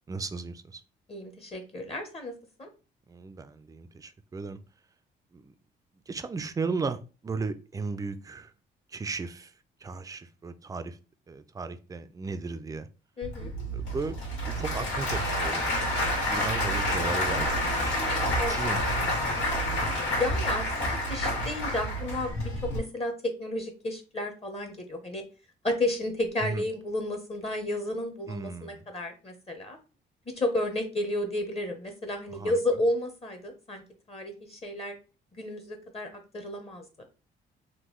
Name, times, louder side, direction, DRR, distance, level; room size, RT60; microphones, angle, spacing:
voice 1, 0.1-0.8 3.1-4.6 5.3-5.5 6.1-8.5 8.9-9.5 9.8-11.0 11.3-12.9 13.7-15.6 16.2-19.4 26.4-26.6 28.3-28.8 32.3-32.6, right 4 dB, 20° right, 0.3 m, -36 dB
voice 2, 1.1-2.3 2.6-2.7 13.2-13.5 18.4-18.6 20.1-25.2 25.6-29.8 30.4-33.8 34.1-34.9 35.3-36.1 36.3-36.8, left 1 dB, 30° left, 0.8 m, -32 dB
Applause / Crowd, 13.2-22.8, left 1 dB, 90° left, 1.8 m, -28 dB
3.6 x 2.2 x 3.1 m
cardioid pair, 90°, 20 cm